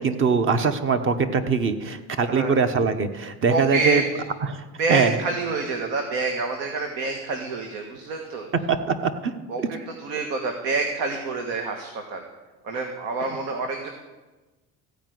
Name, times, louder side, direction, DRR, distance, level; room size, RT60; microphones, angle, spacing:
voice 1, 0.0-4.0 4.4-4.6 4.9-5.2 8.7-9.3 9.6-9.7, right 5 dB, 40° right, 9 dB, 1.1 m, -22 dB
voice 2, 2.3-2.6 3.5-4.0 4.8-8.5 9.5-9.6 10.0-12.2 12.6-13.9, right 3 dB, 80° right, 3 dB, 1.6 m, -27 dB
15.0 x 5.2 x 9.3 m, 1.2 s
cardioid pair, 115°, 32 cm